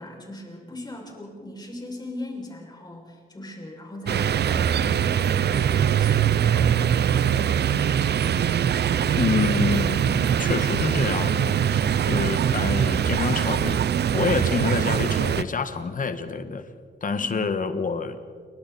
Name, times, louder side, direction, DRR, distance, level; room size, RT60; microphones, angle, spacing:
voice 1, 0.0-8.0 17.1-17.5, left 1 dB, 20° left, -1 dB, 6.7 m, -39 dB
sound 1, 4.1-15.4, right 9 dB, 65° right, 0.7 m, -22 dB
voice 2, 9.2-13.8 14.1-16.7 17.0-18.2, left 4 dB, 45° left, 9 dB, 1.6 m, -27 dB
28.5 x 24.5 x 4.3 m, 2.1 s
wide cardioid pair, 110°, 18 cm